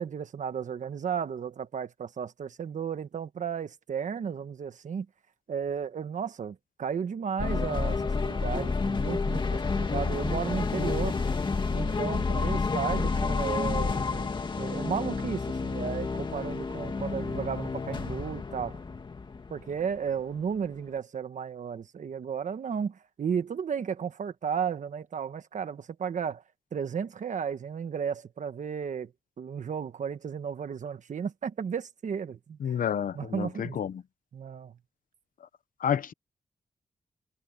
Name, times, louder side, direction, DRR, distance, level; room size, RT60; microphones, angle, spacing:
voice 1, 0.0-5.1 5.5-11.2 11.7-14.3 14.6-18.8 19.5-26.4 26.7-29.1 29.4-32.8 33.1-33.8 34.3-34.8, right 7 dB, 60° right, 1.3 m, -34 dB
sound 1, 7.4-20.2, left 4 dB, 35° left, 2.1 m, -30 dB
voice 2, 32.6-34.0 35.8-36.1, left 8 dB, 85° left, 0.9 m, -30 dB
wide cardioid pair, 165°, 14 cm